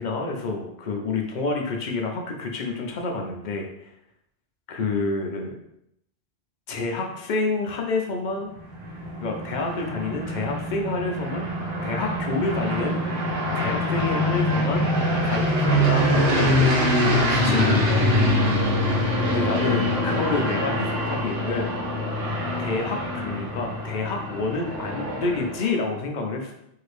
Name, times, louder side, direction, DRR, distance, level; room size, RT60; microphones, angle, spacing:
voice 1, 0.0-3.9 4.7-5.5 6.7-8.5 9.2-11.5 11.8-13.0 13.5-14.9 15.2-18.1 19.3-21.8 22.6-26.5, left 3 dB, 60° left, 1 dB, 0.5 m, -28 dB
sound 1, 8.6-25.8, left 1 dB, 75° right, 1.1 m, -24 dB
2.7 x 2.5 x 3.2 m, 0.76 s
omnidirectional pair, 1.2 m